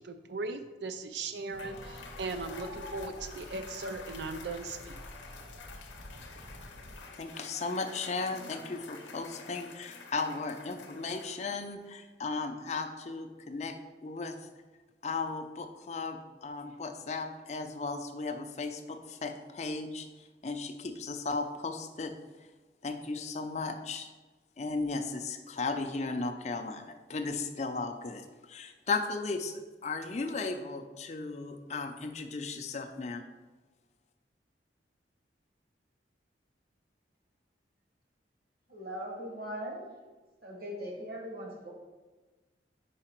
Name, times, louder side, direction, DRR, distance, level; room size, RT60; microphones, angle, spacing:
voice 1, 0.0-5.0, right 3 dB, 70° right, 9 dB, 0.5 m, -38 dB
Cheering / Applause / Crowd, 1.4-11.8, left 4 dB, 80° left, 0.7 m, -48 dB
sound 1, 1.5-7.0, equal, 35° right, 0.8 m, -50 dB
voice 2, 7.1-13.7 14.0-14.4 15.0-22.1 22.8-24.1 24.6-33.2, left 3 dB, 35° left, 6 dB, 0.4 m, -36 dB
voice 3, 38.7-39.9 40.4-41.7, equal, 55° right, -1 dB, 1.3 m, -40 dB
5.0 x 4.8 x 4.4 m, 1.3 s
head